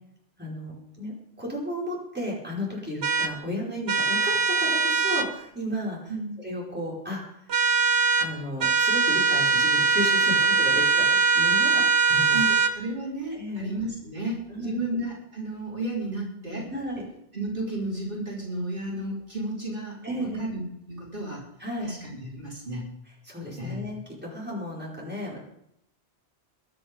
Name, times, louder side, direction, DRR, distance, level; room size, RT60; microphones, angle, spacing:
voice 1, 0.4-1.1 1.4-6.1 6.4-7.2 7.5-7.7 8.2-12.4 13.3-13.7 14.5-14.9 16.7-17.0 20.0-20.5 21.6-21.9 23.2-25.4, equal, 10° right, -5 dB, 5.3 m, -34 dB
sound 1, 3.0-3.3 3.9-5.3 7.5-8.3 8.6-12.7, right 4 dB, 70° right, 1.2 m, -22 dB
voice 2, 12.3-16.7 17.3-20.6 20.9-21.4 21.8-22.9 23.6-23.9, right 1 dB, 50° right, -4 dB, 4.6 m, -33 dB
22.0 x 10.5 x 5.5 m, 0.76 s
omnidirectional pair, 1.1 m